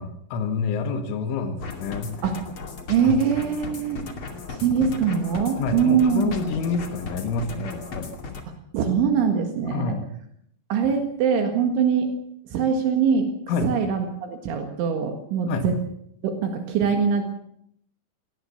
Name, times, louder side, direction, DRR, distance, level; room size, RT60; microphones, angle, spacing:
voice 1, 0.0-2.1 3.0-3.2 5.6-8.2 9.7-10.0 13.5-13.7 15.5-15.7, left 5 dB, 80° left, 6 dB, 4.2 m, -28 dB
sound 1, 1.6-8.4, left 3 dB, 35° left, 2.4 m, -36 dB
voice 2, 2.9-4.0 4.5-6.4 8.7-9.9 10.7-12.1 12.5-13.3 13.6-15.7 16.2-17.3, right 6 dB, 75° right, 5 dB, 4.1 m, -22 dB
22.0 x 18.5 x 7.0 m, 0.70 s
omnidirectional pair, 5.6 m